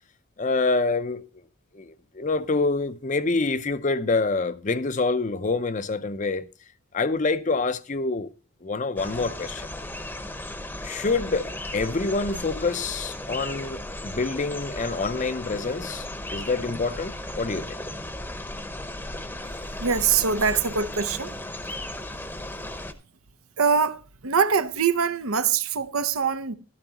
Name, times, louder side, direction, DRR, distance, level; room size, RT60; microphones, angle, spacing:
voice 1, 0.4-1.2 1.7-6.5 6.9-8.3 8.6-9.7 10.8-17.8, left 3 dB, 35° left, 0.5 m, -26 dB
sound 1, 9.0-22.9, left 1 dB, 10° left, 0.8 m, -36 dB
voice 2, 19.4-21.4 23.6-26.6, right 6 dB, 85° right, 0.8 m, -24 dB
12.5 x 12.5 x 2.9 m
head